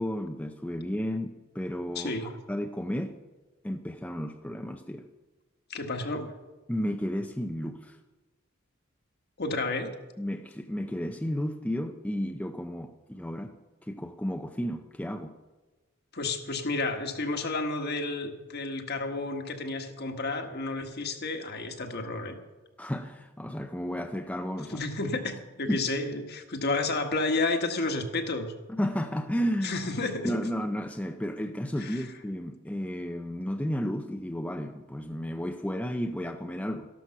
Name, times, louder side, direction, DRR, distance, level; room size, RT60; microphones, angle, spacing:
voice 1, 0.0-2.1 2.5-3.2 3.6-5.1 6.7-8.0 10.2-13.5 13.8-15.3 22.8-24.8 25.7-25.8 28.7-29.8 30.2-36.9, equal, 5° left, 5 dB, 0.5 m, -32 dB
voice 2, 1.9-2.3 5.7-6.3 9.4-9.9 16.1-22.4 24.7-28.5 29.6-30.3 31.8-32.1, left 3 dB, 55° left, 4 dB, 1.5 m, -31 dB
13.0 x 12.5 x 5.8 m, 1.2 s
head